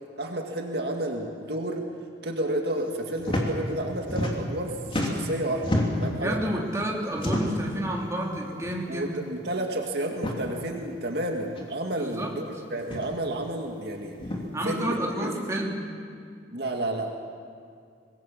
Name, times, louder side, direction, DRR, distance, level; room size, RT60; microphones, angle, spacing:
voice 1, 0.2-1.8 2.2-4.8 5.0-6.4 8.9-14.2 14.6-15.3 16.5-17.1, right 1 dB, 65° right, 2 dB, 2.1 m, -31 dB
sound 1, 3.2-3.5 3.8-4.6 4.9-6.1 7.1-7.7 8.6-8.8 9.1-9.2 10.1-10.4 11.5-11.6 12.8-13.1 14.2-14.4, left 1 dB, 30° left, 3.0 m, -29 dB
voice 2, 6.1-9.2 12.0-12.3 14.5-15.9, right 1 dB, 15° right, -2 dB, 3.1 m, -30 dB
25.0 x 20.5 x 7.4 m, 2.2 s
head